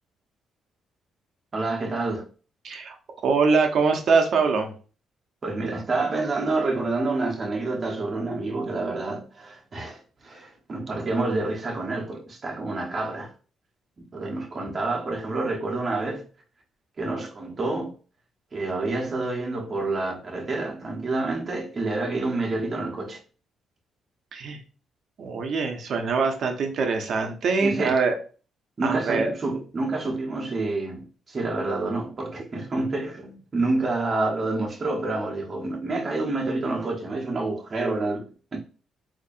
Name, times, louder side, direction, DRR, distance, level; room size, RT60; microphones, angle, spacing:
voice 1, 1.5-2.2 5.4-13.3 14.0-16.2 17.0-17.9 18.5-23.2 27.6-28.0 28.8-38.6, right 2 dB, 35° right, 1.2 m, -28 dB
voice 2, 2.6-3.0 3.2-4.7 14.2-14.3 24.3-24.6 25.2-28.2 28.8-29.3, right 4 dB, 60° right, 0.9 m, -23 dB
4.1 x 2.9 x 2.6 m
cardioid pair, 90°, 0 cm